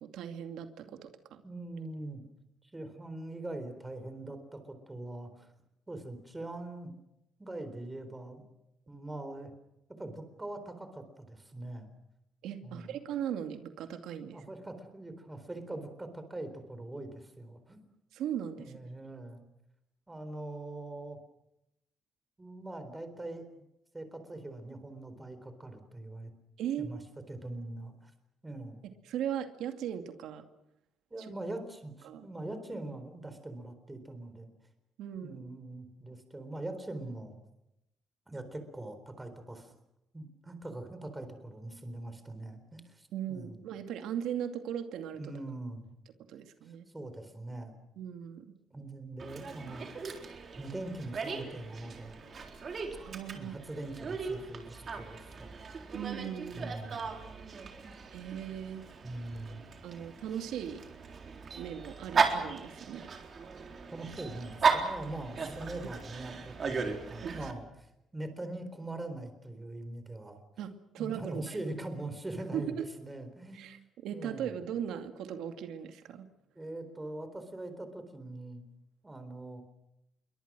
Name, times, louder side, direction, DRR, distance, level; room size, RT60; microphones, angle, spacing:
voice 1, 0.0-1.4 12.4-14.4 18.1-18.7 26.6-27.0 29.1-30.5 31.2-31.3 32.0-32.3 35.0-35.4 43.1-45.2 46.3-46.9 48.0-48.5 53.0-53.5 55.9-56.7 58.1-58.8 59.8-60.8 61.6-63.1 67.2-67.4 70.6-71.7 72.5-72.8 73.5-76.3, right 9 dB, 85° right, 7 dB, 2.4 m, -38 dB
voice 2, 1.4-2.2 2.6-5.5 5.9-6.9 7.4-8.5 8.9-9.5 10.0-11.9 12.6-13.0 14.3-17.8 18.6-19.5 20.1-21.2 22.4-23.6 23.9-26.3 26.8-27.0 27.3-28.1 28.4-28.9 31.1-34.5 35.1-37.4 38.3-39.7 40.1-43.6 45.1-45.9 46.9-47.7 48.7-49.9 50.5-52.2 53.3-55.5 56.5-57.1 59.0-59.6 63.9-70.4 71.0-73.7 74.1-74.5 76.5-78.6 79.0-79.6, right 2 dB, 10° right, 9 dB, 4.0 m, -42 dB
Dog, 49.2-67.5, right 5 dB, 35° right, 4.0 m, -36 dB
28.0 x 23.5 x 6.2 m, 0.87 s
cardioid pair, 150°, 0 cm